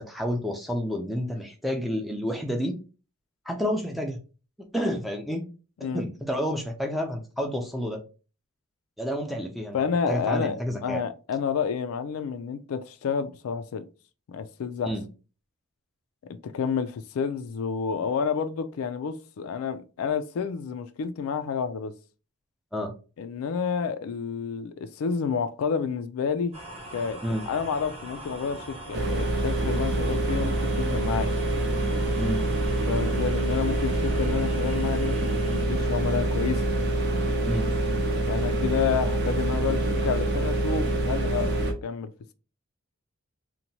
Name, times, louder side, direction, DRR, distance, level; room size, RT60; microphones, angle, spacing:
voice 1, 0.0-2.8 3.5-4.2 4.7-5.4 5.9-8.0 9.0-11.0 14.8-15.0 22.7-22.9 27.2-27.4 32.2-32.4 37.4-37.7, equal, ahead, 0.4 m, -29 dB
voice 2, 9.7-13.9 14.3-14.9 16.2-21.9 23.2-26.5 26.9-27.2 27.5-31.3 32.9-36.7 38.3-42.1, left 6 dB, 75° left, 0.3 m, -29 dB
sound 1, 26.5-35.6, right 1 dB, 25° right, 0.9 m, -42 dB
sound 2, 28.9-41.7, right 2 dB, 50° right, 0.6 m, -26 dB
2.9 x 2.2 x 2.7 m
head